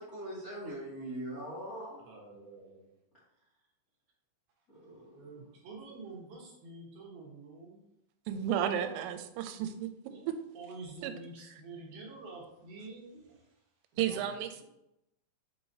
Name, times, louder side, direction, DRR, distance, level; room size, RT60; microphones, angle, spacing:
voice 1, 0.0-2.1 4.7-5.4, right 1 dB, 60° left, -8 dB, 0.9 m, -42 dB
voice 2, 2.0-3.0 4.6-4.7 5.1-7.9 10.1-14.6, right 3 dB, 70° right, -3 dB, 2.5 m, -48 dB
voice 3, 8.3-9.9 11.0-11.1 14.0-14.6, right 9 dB, 85° right, 8 dB, 3.1 m, -32 dB
8.2 x 4.7 x 2.7 m, 0.86 s
omnidirectional pair, 5.7 m